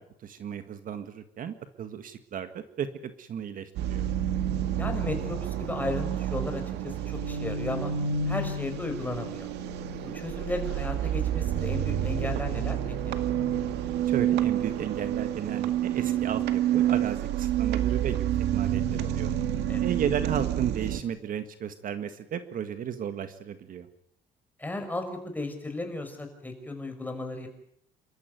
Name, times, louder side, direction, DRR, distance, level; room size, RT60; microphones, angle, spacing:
voice 1, 0.2-4.1 14.1-18.2 18.5-19.3 19.8-23.9, right 8 dB, 55° right, 10 dB, 1.7 m, -34 dB
sound 1, 3.8-21.0, right 10 dB, 80° right, 2.0 m, -28 dB
voice 2, 4.8-7.9 8.3-9.5 10.1-13.2 19.7-19.8 24.6-27.5, left 2 dB, 10° left, 5 dB, 5.6 m, -35 dB
28.0 x 14.0 x 9.4 m, 0.74 s
cardioid pair, 110°, 17 cm